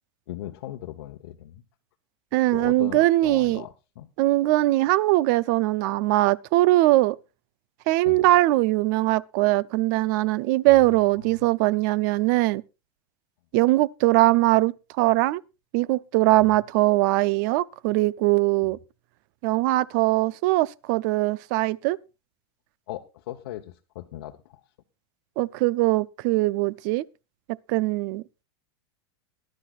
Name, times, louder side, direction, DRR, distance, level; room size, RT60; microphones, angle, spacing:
voice 1, 0.3-1.6 2.5-4.1 8.0-8.2 10.7-11.5 16.4-16.6 22.9-24.6, left 14 dB, 65° left, 1.0 m, -39 dB
voice 2, 2.3-3.6 4.2-7.2 7.9-12.6 13.5-15.4 15.7-18.8 19.4-22.0 25.4-27.0 27.7-28.2, right 18 dB, 45° right, 0.5 m, -21 dB
19.0 x 12.0 x 2.4 m
supercardioid pair, 155°, 14 cm